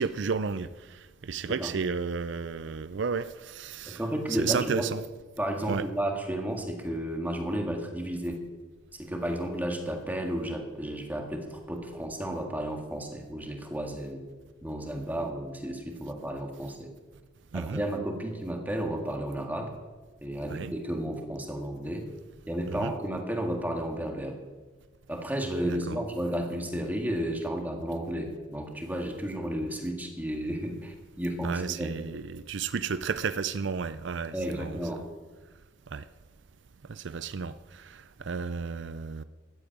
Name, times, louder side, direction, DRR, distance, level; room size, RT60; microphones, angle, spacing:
voice 1, 0.0-4.0 4.4-5.0 5.7-5.8 17.5-17.8 20.5-20.7 22.8-22.9 25.7-26.0 31.4-34.7 35.9-36.1 36.9-39.2, right 5 dB, 65° right, 0.5 m, -32 dB
voice 2, 3.9-4.9 5.4-8.4 9.0-14.2 14.6-16.9 17.5-19.7 20.2-22.1 22.5-24.4 25.1-32.0 34.3-35.1, right 1 dB, 10° right, 1.9 m, -32 dB
13.5 x 8.8 x 8.9 m
head